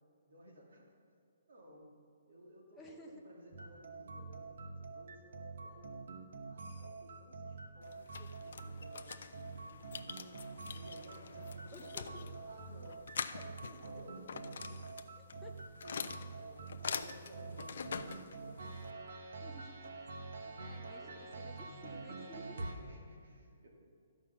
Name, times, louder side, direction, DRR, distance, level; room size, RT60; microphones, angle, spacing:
voice 1, 0.3-0.9 1.5-2.0 2.3-6.0 6.5-10.4 10.7-13.1 13.4-14.8 15.3-19.1 20.6-21.8 22.6-23.7, equal, 80° right, -1 dB, 2.6 m, -57 dB
voice 2, 2.7-3.2 11.7-12.1 13.3-13.4 15.2-15.5 19.4-20.0 20.4-22.7, left 1 dB, 5° left, -3 dB, 0.6 m, -55 dB
sound 1, 3.5-22.8, right 3 dB, 60° right, 1.0 m, -47 dB
sound 2, 7.8-18.9, left 6 dB, 55° left, 0.4 m, -45 dB
13.0 x 5.4 x 6.9 m, 2.4 s
hypercardioid pair, 180°, 0 cm